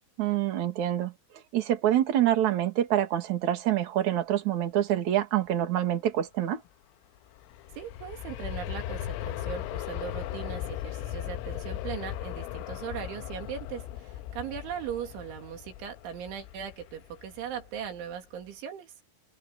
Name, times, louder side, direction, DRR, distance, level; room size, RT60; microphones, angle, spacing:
voice 1, 0.2-1.1 1.5-6.6, right 12 dB, 45° right, 3.0 m, -26 dB
Aircraft, 7.2-18.0 18.4-18.5, left 12 dB, 85° left, 3.6 m, -38 dB
voice 2, 7.8-18.9, right 8 dB, 70° right, 5.0 m, -39 dB
open air
omnidirectional pair, 5.8 m